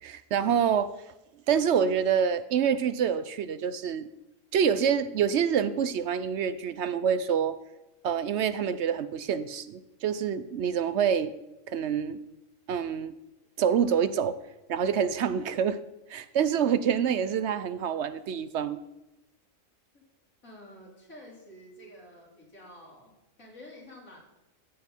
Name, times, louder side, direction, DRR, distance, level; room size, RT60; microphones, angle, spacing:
voice 1, 0.0-0.9 1.5-4.1 4.5-7.6 8.0-11.3 11.7-12.2 12.7-13.2 13.6-14.4 14.7-15.8 16.1-18.8, right 7 dB, 65° right, 14 dB, 0.8 m, -26 dB
voice 2, 20.4-23.1 23.4-24.2, left 1 dB, 90° left, -3 dB, 3.7 m, -49 dB
14.5 x 8.1 x 4.4 m, 0.96 s
omnidirectional pair, 1.4 m